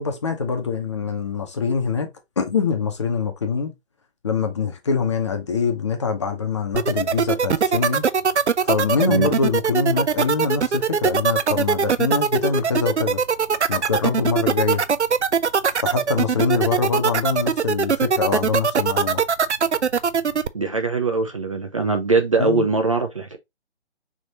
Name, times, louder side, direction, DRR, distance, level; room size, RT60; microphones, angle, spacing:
voice 1, 0.0-2.1 2.4-3.7 4.2-8.0 8.6-13.2 13.7-14.8 15.7-19.2 22.4-22.6, left 5 dB, 25° left, 0.8 m, -24 dB
sound 1, 6.7-20.5, right 6 dB, 80° right, 0.6 m, -20 dB
voice 2, 20.5-23.4, right 3 dB, 30° right, 0.6 m, -21 dB
5.1 x 3.6 x 2.8 m
figure-of-eight pair, 145°, 34 cm